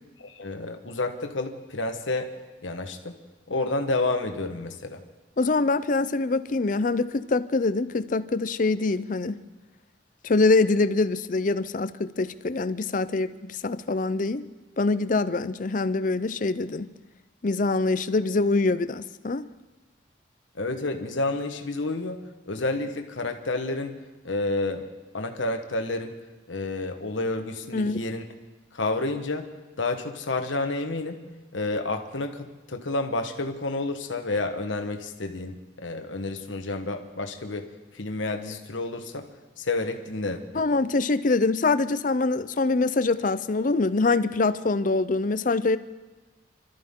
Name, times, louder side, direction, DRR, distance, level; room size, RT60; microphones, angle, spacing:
voice 1, 0.2-2.3 2.6-3.2 3.5-5.0 20.6-24.0 24.2-24.9 25.1-26.2 26.5-28.2 28.7-29.5 29.8-31.2 31.5-37.7 37.9-39.3 39.6-40.6, left 2 dB, 85° left, 5 dB, 1.3 m, -30 dB
voice 2, 5.4-9.3 10.2-14.5 14.8-16.9 17.4-19.5 27.7-28.0 40.5-45.8, left 3 dB, 45° left, 14 dB, 0.5 m, -24 dB
26.5 x 13.5 x 3.7 m, 1.2 s
head